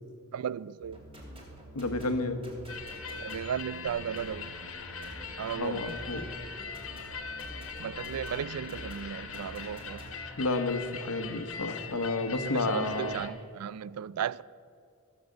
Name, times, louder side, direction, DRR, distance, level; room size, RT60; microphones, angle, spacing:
voice 1, 0.3-1.0 3.2-4.5 5.4-5.8 7.8-10.0 12.4-14.4, right 8 dB, 85° right, 0.3 m, -35 dB
sound 1, 0.8-10.2, right 1 dB, 25° right, 3.1 m, -47 dB
voice 2, 1.7-2.4 5.6-6.2 7.8-7.9 10.4-13.3, left 2 dB, 90° left, 1.1 m, -31 dB
sound 2, 2.7-13.3, left 5 dB, 65° left, 1.4 m, -41 dB
15.5 x 7.3 x 7.8 m
head